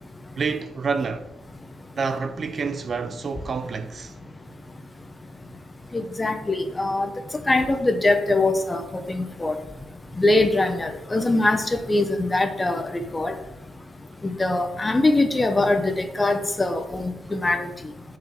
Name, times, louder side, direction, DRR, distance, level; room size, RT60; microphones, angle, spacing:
voice 1, 0.4-1.2 2.0-4.1, right 5 dB, 35° right, 0.4 m, -28 dB
voice 2, 5.9-7.1 7.5-8.8 9.1-9.5 10.2-13.3 14.4-17.7, left 2 dB, 15° left, 0.7 m, -22 dB
6.9 x 4.9 x 6.7 m
cardioid pair, 150°, 0 cm